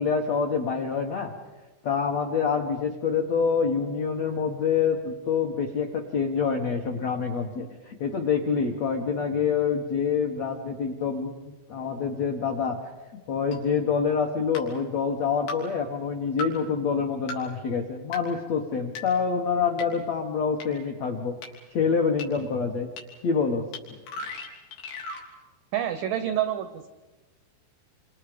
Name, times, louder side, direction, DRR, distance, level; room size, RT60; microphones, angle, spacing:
voice 1, 0.0-1.3 1.8-12.8 13.1-21.3 21.7-22.9 23.2-23.6, left 6 dB, 75° left, 2 dB, 1.5 m, -26 dB
sound 1, 13.5-13.6 14.5-14.7 15.5-15.6 16.4-16.5 17.3-17.4 18.1-18.2 19.0-19.1 19.8-19.9 20.6-20.7 21.4-21.5 22.2-22.3 23.0-23.1 23.7-23.8 24.1-25.2, left 2 dB, 90° left, 5.7 m, -35 dB
voice 2, 25.7-26.9, right 11 dB, 85° right, 10 dB, 1.9 m, -28 dB
28.5 x 27.0 x 5.1 m, 1.2 s
omnidirectional pair, 5.0 m